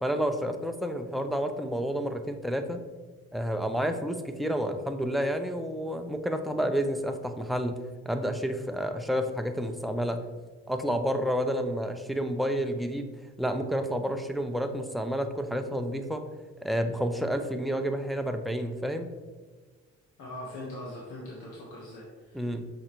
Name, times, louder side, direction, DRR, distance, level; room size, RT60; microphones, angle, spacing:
voice 1, 0.0-2.8 3.3-7.8 8.1-10.3 10.7-13.1 13.4-16.2 16.6-19.1 22.3-22.7, equal, ahead, 6 dB, 0.5 m, -30 dB
voice 2, 20.2-22.5, left 1 dB, 90° left, -4 dB, 1.3 m, -41 dB
6.4 x 5.1 x 3.0 m, 1.3 s
cardioid pair, 90°, 30 cm